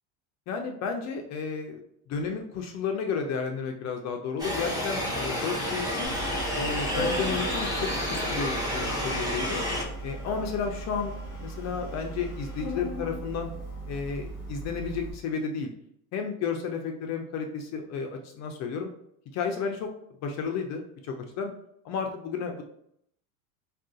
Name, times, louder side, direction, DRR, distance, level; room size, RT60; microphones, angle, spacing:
voice 1, 0.5-1.8 2.1-6.1 6.5-9.6 10.0-13.5 13.9-15.7 16.1-18.9 19.3-19.9 20.2-21.5 21.8-22.6, left 5 dB, 40° left, 3 dB, 0.4 m, -32 dB
sound 1, 4.4-9.8, left 1 dB, 10° right, 0.6 m, -30 dB
Organ, 6.0-15.1, right 1 dB, 10° left, 1.2 m, -37 dB
2.4 x 2.3 x 3.6 m, 0.71 s
supercardioid pair, 115°, 45 cm